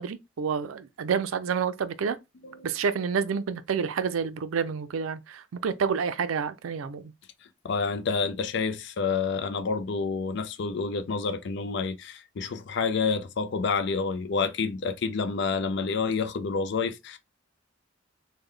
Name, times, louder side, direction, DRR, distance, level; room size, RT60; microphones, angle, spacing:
voice 1, 0.0-2.2 2.6-7.1, right 6 dB, 85° right, 0.4 m, -29 dB
voice 2, 7.6-17.2, left 5 dB, 60° left, 0.4 m, -28 dB
3.2 x 2.2 x 3.6 m
head